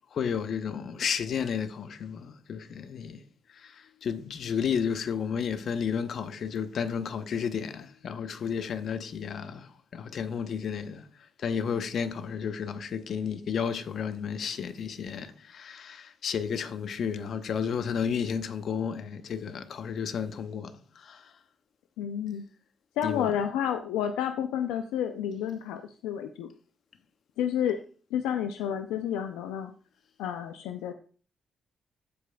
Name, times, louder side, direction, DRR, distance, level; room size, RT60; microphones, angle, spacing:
voice 1, 0.1-3.2 3.5-21.3 23.0-23.3, left 7 dB, 65° left, 0.8 m, -32 dB
voice 2, 22.0-22.4 23.0-26.5 27.4-27.8 28.1-29.7 30.2-30.9, left 9 dB, 90° left, 0.5 m, -30 dB
15.0 x 5.1 x 2.3 m
supercardioid pair, 55°, 0 cm